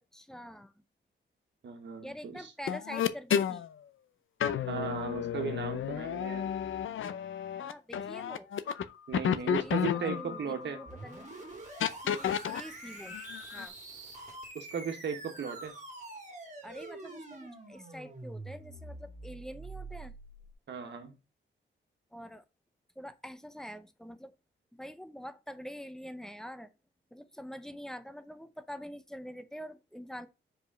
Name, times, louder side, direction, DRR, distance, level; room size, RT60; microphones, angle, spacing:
voice 1, 0.1-0.7 2.0-3.7 7.5-8.5 9.4-11.3 12.0-13.2 13.5-13.7 16.6-20.1 22.1-22.4 23.0-24.3 24.7-26.7 27.1-30.3, equal, 5° left, 0.6 m, -45 dB
voice 2, 1.6-2.5 4.7-6.5 9.1-10.8 14.5-15.7 20.7-21.1, right 6 dB, 65° right, 1.7 m, -36 dB
sound 1, 2.7-3.7 4.4-8.8 9.1-10.9 11.8-12.6 13.1-13.7, left 9 dB, 75° left, 0.7 m, -32 dB
sound 2, 10.9-20.5, right 2 dB, 35° right, 2.3 m, -46 dB
5.1 x 5.0 x 5.1 m
wide cardioid pair, 165°, 20 cm